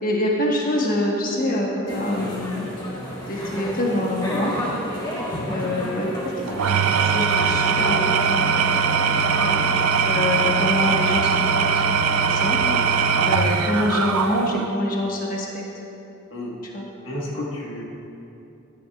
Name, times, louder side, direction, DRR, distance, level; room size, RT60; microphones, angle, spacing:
voice 1, 0.0-2.7 3.3-4.5 5.5-8.0 8.3-8.8 9.3-9.6 10.0-11.8 12.2-12.6 13.3-15.6 16.7-16.8, left 1 dB, 40° left, -2 dB, 1.2 m, -25 dB
sound 1, 1.9-14.5, equal, 20° left, 1.3 m, -33 dB
Engine / Tools, 6.5-14.8, right 6 dB, 80° right, 0.4 m, -21 dB
voice 2, 12.5-12.9 13.1-13.3 16.3-16.6 17.0-17.8, left 1 dB, 60° left, -4 dB, 1.5 m, -33 dB
15.0 x 9.9 x 2.4 m, 2.8 s
head